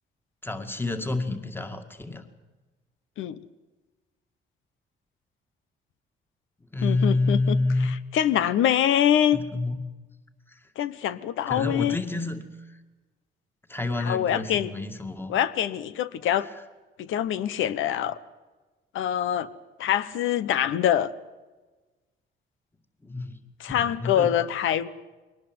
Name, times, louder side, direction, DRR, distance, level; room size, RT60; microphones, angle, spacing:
voice 1, 0.4-2.2 6.7-7.9 9.3-9.8 10.5-10.6 11.5-12.8 13.7-15.3 16.4-16.5 23.0-23.4 23.7-24.3, left 2 dB, 10° left, 6 dB, 2.1 m, -28 dB
voice 2, 6.8-9.4 10.8-12.0 14.0-14.7 15.3-16.5 17.0-18.2 18.9-19.5 19.8-21.1 23.6-24.9, left 10 dB, 85° left, 15 dB, 1.1 m, -24 dB
22.5 x 19.0 x 7.9 m, 1.2 s
cardioid pair, 90°, 20 cm